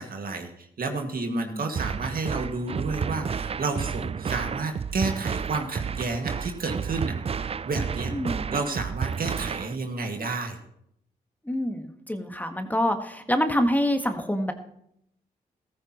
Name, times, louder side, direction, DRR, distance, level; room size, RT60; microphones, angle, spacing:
voice 1, 0.0-8.1 8.5-10.6, right 3 dB, 55° right, 4 dB, 2.0 m, -31 dB
voice 2, 1.3-1.6 8.1-8.5 11.4-14.5, equal, 10° left, 6 dB, 1.5 m, -26 dB
sound 1, 1.8-9.8, right 6 dB, 35° right, 0.4 m, -31 dB
14.0 x 14.0 x 3.0 m, 0.74 s
supercardioid pair, 45°, 18 cm